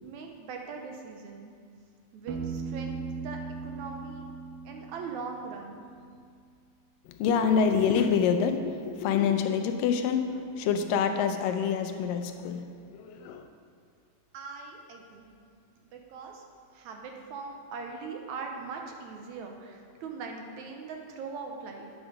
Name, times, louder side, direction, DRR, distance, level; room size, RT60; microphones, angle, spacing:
voice 1, 0.0-1.5 2.1-4.2 4.7-5.8 14.3-15.3 15.8-16.4 16.7-21.9, right 4 dB, 70° right, 2 dB, 2.1 m, -41 dB
Piano, 2.3-6.0, right 5 dB, 85° right, 2.5 m, -38 dB
voice 2, 7.1-13.5, left 7 dB, 90° left, 7 dB, 2.4 m, -27 dB
11.0 x 9.1 x 5.0 m, 2.2 s
omnidirectional pair, 3.8 m